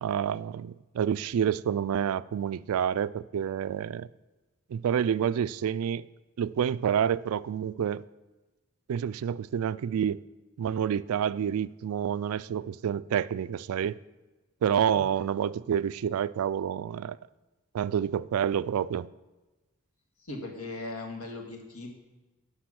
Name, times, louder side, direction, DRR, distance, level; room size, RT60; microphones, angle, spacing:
voice 1, 0.0-4.1 4.7-6.1 6.4-8.0 8.9-10.2 10.6-14.0 14.6-17.2 17.7-19.1, right 8 dB, 75° right, 0.3 m, -28 dB
voice 2, 20.2-21.9, left 2 dB, 80° left, 1.7 m, -38 dB
10.0 x 6.0 x 6.3 m
head